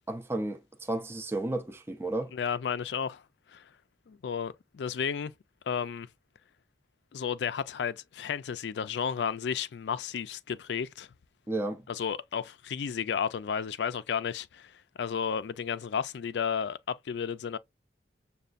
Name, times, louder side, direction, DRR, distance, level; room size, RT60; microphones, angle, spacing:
voice 1, 0.1-2.3 11.5-11.8, right 2 dB, 15° right, 0.4 m, -33 dB
voice 2, 2.3-3.2 3.5-3.7 4.1-5.3 5.7-6.1 7.1-11.1 11.9-17.6, left 7 dB, 75° left, 0.4 m, -33 dB
6.7 x 2.3 x 2.5 m
head